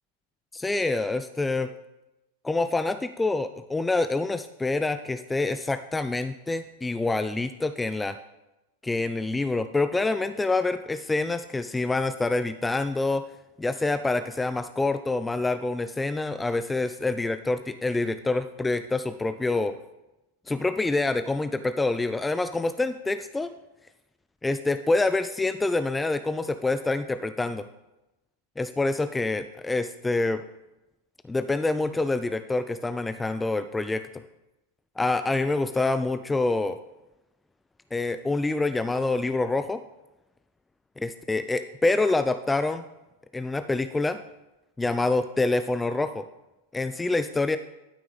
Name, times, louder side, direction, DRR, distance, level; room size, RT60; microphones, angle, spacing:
voice 1, 0.5-1.7 2.4-8.2 8.8-13.2 13.6-19.7 20.5-23.5 24.4-27.7 28.6-30.4 31.3-34.2 35.0-36.8 37.9-39.8 41.0-42.8 43.3-44.2 44.8-46.3 46.7-47.6, left 2 dB, 10° left, 11 dB, 0.3 m, -26 dB
12.0 x 6.0 x 3.5 m, 0.97 s
figure-of-eight pair, 90°, 0 cm